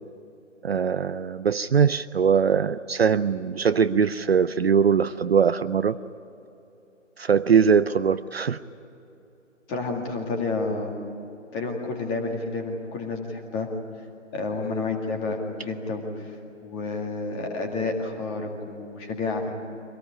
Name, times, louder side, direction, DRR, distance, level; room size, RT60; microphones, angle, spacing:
voice 1, 0.6-6.0 7.2-8.6, right 6 dB, 55° right, 13 dB, 0.6 m, -21 dB
voice 2, 9.7-10.9 11.5-13.7 14.3-16.4 16.6-19.5, left 3 dB, 15° left, 2 dB, 2.1 m, -30 dB
24.5 x 18.5 x 9.9 m, 2.9 s
figure-of-eight pair, 155°, 38 cm